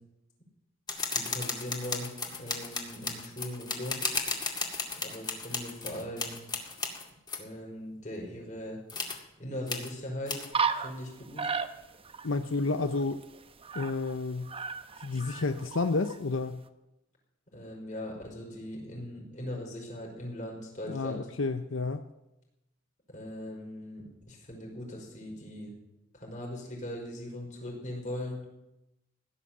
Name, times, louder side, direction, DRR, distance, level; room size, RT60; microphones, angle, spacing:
sound 1, 0.9-7.4 8.9-9.2 9.7-9.9 10.3-10.5, left 4 dB, 20° left, 2.2 m, -34 dB
voice 1, 1.1-2.1 2.4-4.0 5.0-6.5 7.4-8.8 9.4-10.4 10.8-11.5 17.5-21.3 23.1-25.7 26.1-28.4, left 1 dB, 40° left, -1 dB, 5.1 m, -39 dB
sound 2, 10.5-11.1 11.4-12.3 12.5-12.6 12.9-14.2 14.4-16.2, right 5 dB, 30° right, 0.9 m, -33 dB
voice 2, 12.2-13.2 13.7-14.5 15.0-16.6 20.9-22.0, left 3 dB, 75° left, 9 dB, 0.7 m, -30 dB
16.5 x 11.0 x 7.4 m, 0.92 s
head